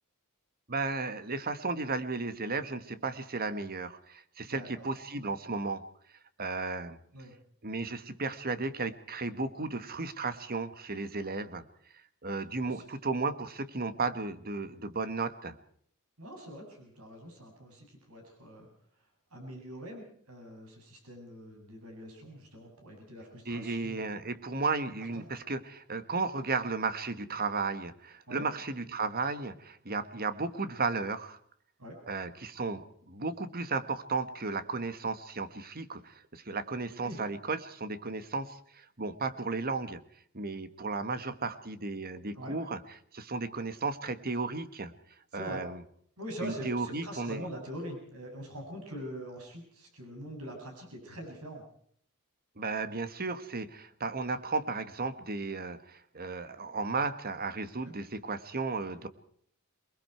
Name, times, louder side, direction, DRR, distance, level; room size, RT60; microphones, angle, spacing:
voice 1, 0.7-5.8 6.4-7.0 7.6-11.6 12.2-15.6 23.4-31.4 32.1-40.0 40.3-42.8 43.1-44.9 45.3-45.8 46.4-47.4 52.6-59.1, right 3 dB, 45° right, 11 dB, 1.6 m, -34 dB
voice 2, 4.4-4.9 7.1-7.3 12.6-13.0 16.2-18.7 19.3-24.2 25.1-25.2 28.3-28.4 31.8-32.0 37.0-37.2 42.3-42.6 45.3-45.6 46.2-51.6 57.8-57.9, equal, 80° right, 3 dB, 7.6 m, -43 dB
27.5 x 20.5 x 4.5 m, 0.62 s
head